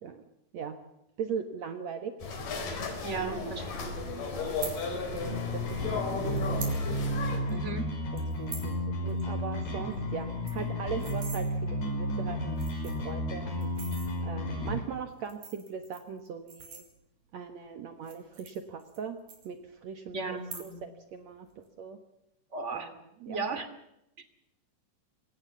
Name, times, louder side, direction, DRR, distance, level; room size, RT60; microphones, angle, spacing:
voice 1, 1.2-2.1 3.1-3.5 4.4-4.6 4.9-6.6 7.5-7.8 8.1-8.7 9.0-13.7 14.2-16.8 17.3-19.2 19.4-22.0 22.7-23.4, right 6 dB, 60° right, 8 dB, 2.5 m, -40 dB
sound 1, 2.2-7.4, left 4 dB, 75° left, 5.6 m, -35 dB
voice 2, 3.0-3.9 7.5-7.9 20.1-20.8 22.5-22.9 23.3-23.7, right 3 dB, 25° right, 10 dB, 2.4 m, -36 dB
sound 2, 4.5-4.8 5.7-5.8 6.3-6.8 7.1-7.2 7.5-7.7 8.2-8.7 9.1-9.2 9.5-9.6 9.9-10.0 10.3-11.4 12.1-12.2 12.5-13.1 13.6-14.1 15.1-17.3 17.9-19.0 19.3-19.9 20.3-20.9 21.2-21.6, right 5 dB, 90° right, 5.9 m, -44 dB
sound 3, 5.2-14.8, equal, 60° left, 6.7 m, -32 dB
23.0 x 18.0 x 6.9 m, 0.83 s
omnidirectional pair, 3.8 m